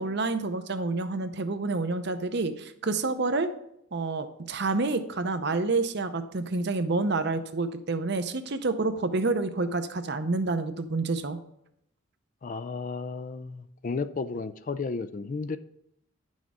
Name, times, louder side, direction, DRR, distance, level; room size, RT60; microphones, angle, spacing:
voice 1, 0.0-3.5 3.9-11.4, right 3 dB, 50° right, 10 dB, 0.6 m, -28 dB
voice 2, 12.4-15.6, left 4 dB, 35° left, 12 dB, 0.3 m, -33 dB
10.5 x 6.3 x 3.6 m, 0.78 s
head